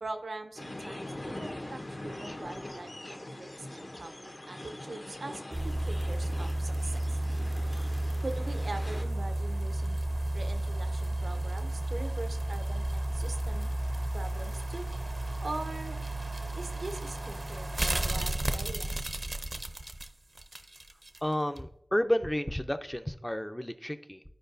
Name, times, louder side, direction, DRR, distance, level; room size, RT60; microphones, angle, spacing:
voice 1, 0.0-7.2 8.2-10.0 10.3-13.7 14.1-14.8 15.4-16.0 16.6-19.1, right 2 dB, 85° right, 7 dB, 0.7 m, -42 dB
sound 1, 0.6-9.0, left 1 dB, 55° left, 1.1 m, -43 dB
sound 2, 5.5-21.2 21.6-21.7, right 1 dB, 50° right, 0.6 m, -32 dB
voice 2, 21.2-24.2, equal, 15° left, 9 dB, 0.5 m, -31 dB
13.5 x 4.7 x 2.6 m, 0.79 s
wide cardioid pair, 60°, 0 cm